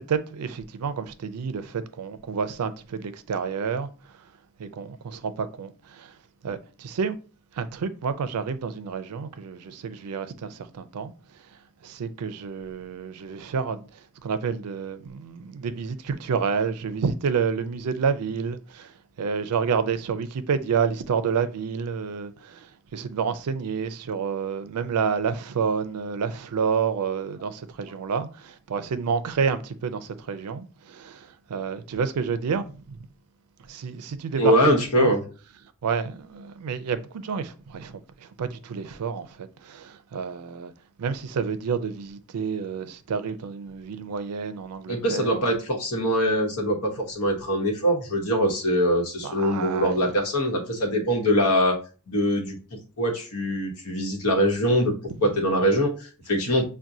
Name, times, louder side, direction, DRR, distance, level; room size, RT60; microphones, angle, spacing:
voice 1, 0.0-4.3 4.6-6.2 6.4-7.2 7.5-11.1 11.4-33.0 33.7-34.5 35.0-35.2 35.8-40.7 41.0-45.5 49.2-50.1 55.2-55.3, right 6 dB, 85° right, 0.4 m, -29 dB
voice 2, 34.4-35.2 44.9-51.8 52.1-54.9 55.2-56.6, equal, 80° left, 1.0 m, -23 dB
5.9 x 2.2 x 2.6 m
head